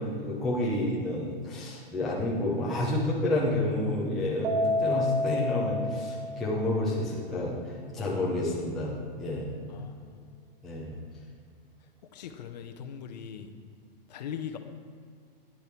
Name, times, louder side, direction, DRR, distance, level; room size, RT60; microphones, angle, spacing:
voice 1, 0.0-7.6 7.9-9.5 10.6-11.0, left 1 dB, ahead, -7 dB, 0.4 m, -29 dB
Keyboard (musical), 4.4-6.9, left 1 dB, 70° right, 0.9 m, -29 dB
voice 2, 9.7-10.3 12.1-13.5 14.1-14.6, left 8 dB, 45° left, 7 dB, 0.7 m, -40 dB
9.9 x 6.7 x 4.4 m, 2.2 s
hypercardioid pair, 165°, 29 cm